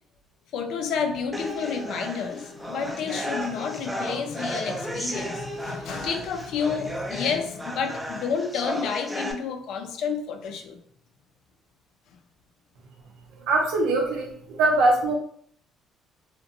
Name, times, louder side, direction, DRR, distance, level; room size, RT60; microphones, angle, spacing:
voice 1, 0.5-10.8, left 6 dB, 70° left, 6 dB, 0.4 m, -30 dB
sound 1, 1.3-9.3, equal, 5° right, 0.4 m, -34 dB
voice 2, 13.5-15.2, right 2 dB, 80° right, 0 dB, 0.6 m, -22 dB
2.6 x 2.1 x 2.5 m, 0.63 s
cardioid pair, 110°, 0 cm